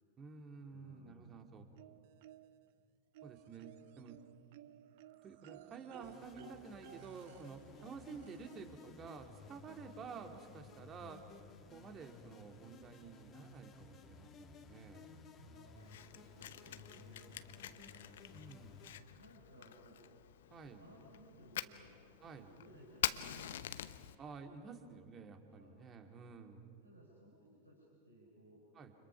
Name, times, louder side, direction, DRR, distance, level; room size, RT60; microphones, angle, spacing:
voice 1, 0.2-1.7 3.2-4.2 5.2-11.2 11.6-15.1 18.3-18.8 20.5-20.8 22.2-22.5 24.2-26.6 28.7-28.9, right 5 dB, 25° right, 5 dB, 2.7 m, -51 dB
voice 2, 0.7-1.8 15.4-18.2 19.1-20.0 20.7-22.0 22.4-24.0 25.5-25.9 26.8-28.7, right 1 dB, 85° right, -4 dB, 5.3 m, -61 dB
sound 1, 1.8-2.7 3.1-8.8 10.0-10.1 10.5-10.6, right 13 dB, 50° right, 0.8 m, -58 dB
sound 2, 6.0-19.0, left 4 dB, 30° left, 2.2 m, -57 dB
Fire, 15.8-24.1, left 11 dB, 60° left, 0.9 m, -45 dB
30.0 x 29.5 x 5.9 m, 2.3 s
figure-of-eight pair, 90°, 0 cm